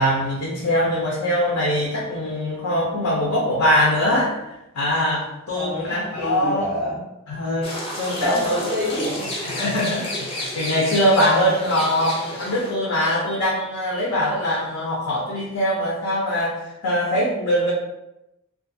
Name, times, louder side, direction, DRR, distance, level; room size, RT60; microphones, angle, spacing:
voice 1, 0.0-4.4 4.7-6.7 7.3-8.6 9.4-17.7, equal, 75° left, -4 dB, 0.6 m, -22 dB
voice 2, 5.5-7.0 8.2-9.3, left 1 dB, 20° right, -6 dB, 0.5 m, -27 dB
sound 1, 7.6-12.7, left 1 dB, 25° left, 0.6 m, -31 dB
2.4 x 2.3 x 2.6 m, 0.90 s
head